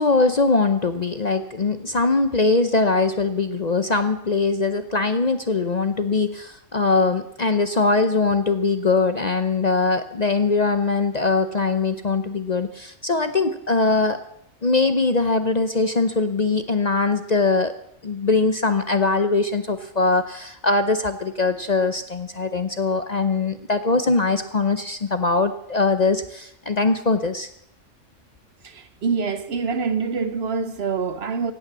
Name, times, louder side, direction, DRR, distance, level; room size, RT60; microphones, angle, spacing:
voice 1, 0.0-14.2 14.6-17.7 18.0-27.5, left 3 dB, 40° left, 0.7 m, -21 dB
voice 2, 28.6-31.5, right 5 dB, 55° right, 1.1 m, -25 dB
16.5 x 9.5 x 7.4 m
omnidirectional pair, 1.3 m